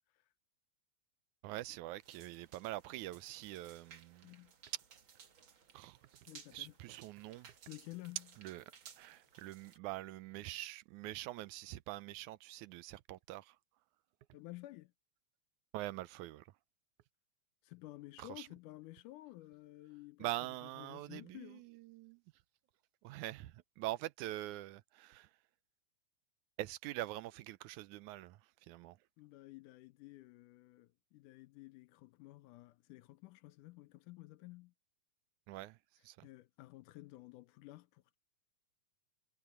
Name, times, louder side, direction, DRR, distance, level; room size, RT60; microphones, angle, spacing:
voice 1, 1.4-4.3 5.7-6.2 6.5-7.5 8.4-13.6 15.7-16.6 18.2-18.5 20.2-22.2 23.0-25.4 26.6-29.0 35.5-35.8 36.0-36.3, right 16 dB, 80° right, 2.0 m, -44 dB
sound 1, 2.0-9.8, right 7 dB, 45° right, 2.1 m, -60 dB
voice 2, 6.3-6.7 7.7-8.3 14.3-14.9 17.6-20.3 20.8-21.6 29.2-34.7 36.2-38.2, left 18 dB, 85° left, 2.2 m, -53 dB
omnidirectional pair, 3.5 m